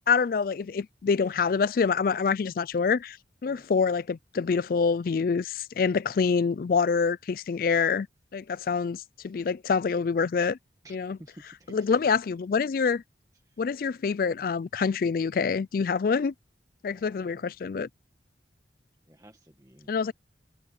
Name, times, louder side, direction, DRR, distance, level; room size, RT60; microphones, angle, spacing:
voice 1, 0.0-3.2 3.4-8.1 8.3-10.6 10.9-11.2 11.7-13.0 13.6-16.3 16.8-17.9 19.9-20.1, left 5 dB, 50° left, 0.3 m, -26 dB
voice 2, 10.8-12.0 13.3-13.8 16.9-17.8 19.1-20.1, right 1 dB, 20° right, 1.7 m, -54 dB
head